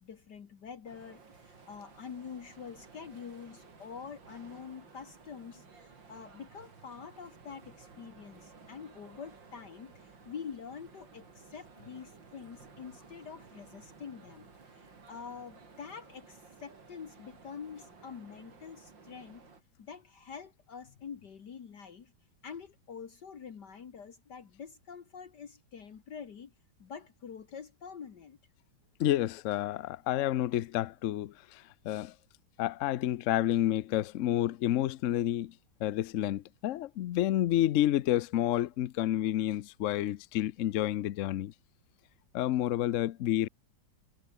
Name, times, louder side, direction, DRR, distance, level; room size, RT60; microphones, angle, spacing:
voice 1, 0.0-19.5 19.8-22.1 22.4-26.5 26.8-28.4, left 6 dB, 60° left, 2.2 m, -46 dB
sound 1, 0.9-19.6, right 5 dB, 70° right, 3.8 m, -55 dB
voice 2, 29.0-32.1 32.6-35.5 35.8-41.5 42.3-43.5, left 13 dB, 80° left, 0.7 m, -29 dB
omnidirectional pair, 2.1 m